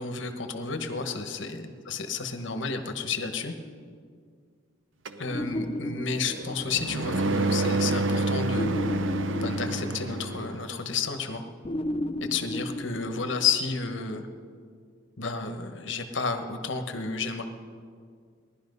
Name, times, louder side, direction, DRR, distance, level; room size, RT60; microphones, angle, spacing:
voice 1, 0.0-3.5 5.2-8.8 9.4-11.4 12.2-14.3 15.2-17.5, left 5 dB, 60° left, 7 dB, 1.1 m, -31 dB
sound 1, 5.1-10.6, right 2 dB, 65° right, 0.7 m, -29 dB
sound 2, 5.3-7.0 8.6-10.7 11.6-13.8, left 1 dB, 25° left, 0.4 m, -34 dB
18.5 x 11.5 x 5.4 m, 2.1 s
head